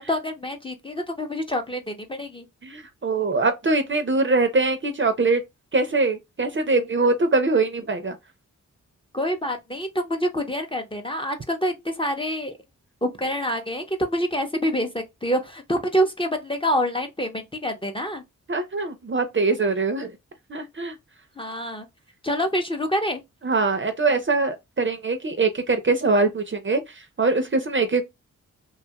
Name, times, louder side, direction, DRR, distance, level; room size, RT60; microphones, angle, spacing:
voice 1, 0.0-2.5 9.1-12.6 13.0-18.2 21.4-21.9 22.2-23.2, equal, 15° left, 0.6 m, -26 dB
voice 2, 2.6-5.4 5.7-8.2 18.5-20.1 20.5-20.9 23.4-28.0, right 3 dB, 35° right, 0.6 m, -23 dB
2.6 x 2.4 x 2.8 m
cardioid pair, 70°, 33 cm